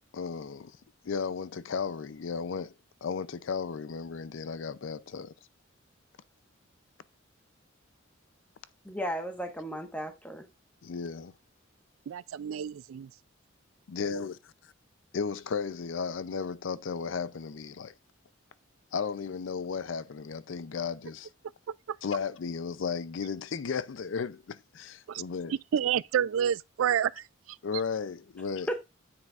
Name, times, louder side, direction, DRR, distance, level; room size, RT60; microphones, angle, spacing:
voice 1, 0.1-0.8 1.0-2.7 3.0-5.3 10.8-11.3 13.9-14.7 15.1-17.9 18.9-21.3 22.0-25.5 27.6-28.7, left 5 dB, 70° left, 0.5 m, -34 dB
voice 2, 8.8-10.5 28.7-28.8, equal, 5° left, 1.2 m, -34 dB
voice 3, 12.1-13.1 21.7-22.0 25.1-25.2 25.7-27.6, right 9 dB, 80° right, 0.3 m, -29 dB
9.3 x 7.6 x 2.4 m
head